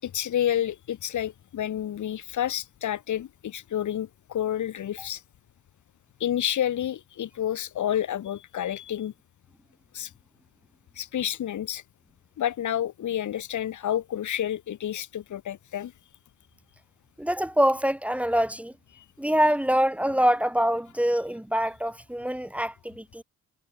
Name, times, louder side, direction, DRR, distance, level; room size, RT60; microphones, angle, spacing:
voice 1, 0.0-5.2 6.2-9.1 9.9-10.1 11.0-11.8 12.4-15.9 19.0-19.1, left 10 dB, 75° left, 6.4 m, -29 dB
voice 2, 17.2-18.7 19.2-23.2, equal, 5° right, 3.5 m, -25 dB
cardioid pair, 130°, 30 cm